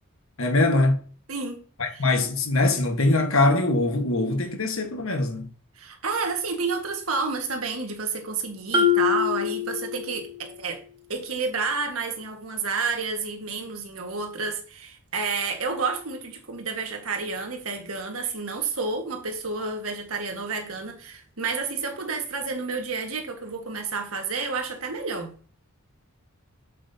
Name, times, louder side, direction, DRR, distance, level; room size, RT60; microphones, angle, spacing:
voice 1, 0.4-1.0 1.8-5.5, left 2 dB, 65° left, 1.6 m, -22 dB
voice 2, 1.3-1.6 1.9-2.1 5.8-10.8 11.1-25.3, right 4 dB, 80° right, 1.8 m, -30 dB
Marimba xylophone, 8.7-10.5, left 7 dB, 20° right, 1.5 m, -24 dB
7.9 x 7.6 x 2.8 m
head